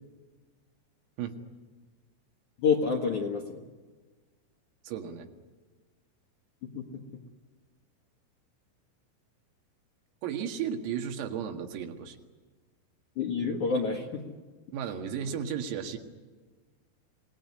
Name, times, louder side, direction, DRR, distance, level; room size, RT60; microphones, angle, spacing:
voice 1, 2.6-3.6 6.7-6.8 13.2-14.2, left 5 dB, 60° left, 1 dB, 2.1 m, -28 dB
voice 2, 4.8-5.3 10.2-12.2 14.7-16.0, right 8 dB, 90° right, 4 dB, 4.6 m, -34 dB
27.5 x 19.0 x 9.8 m, 1.4 s
omnidirectional pair, 5.9 m